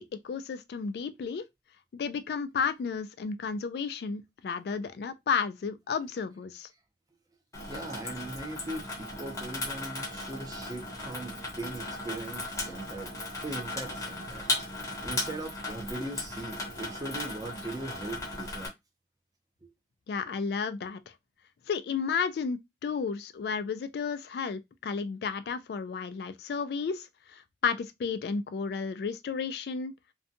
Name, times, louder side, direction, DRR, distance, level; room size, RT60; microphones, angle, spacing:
voice 1, 0.0-1.5 1.9-6.7 20.1-21.0 21.7-29.9, left 5 dB, 70° left, 0.3 m, -32 dB
Water tap faucet / Sink (filling or washing), 7.5-18.7, left 2 dB, 15° left, 0.7 m, -36 dB
voice 2, 7.7-13.2 13.4-14.5 14.7-18.7 19.6-19.7, right 2 dB, 20° right, 0.5 m, -40 dB
2.6 x 2.2 x 2.5 m
head